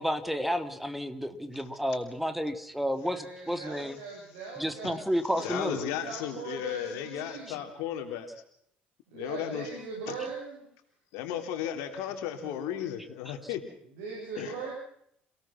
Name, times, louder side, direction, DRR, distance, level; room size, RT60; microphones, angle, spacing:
voice 1, 0.0-4.0 4.6-5.8 7.5-7.6 13.2-13.5, equal, ahead, 8 dB, 3.1 m, -31 dB
voice 2, 3.0-5.0 5.3-7.7 9.1-10.7 12.3-12.5 14.0-14.7, right 4 dB, 65° right, -2 dB, 7.8 m, -40 dB
voice 3, 5.4-8.3 9.1-9.7 10.1-10.2 11.1-13.6 14.3-14.5, left 10 dB, 65° left, 6 dB, 3.3 m, -34 dB
29.0 x 18.0 x 5.9 m, 0.71 s
figure-of-eight pair, 55°, 5 cm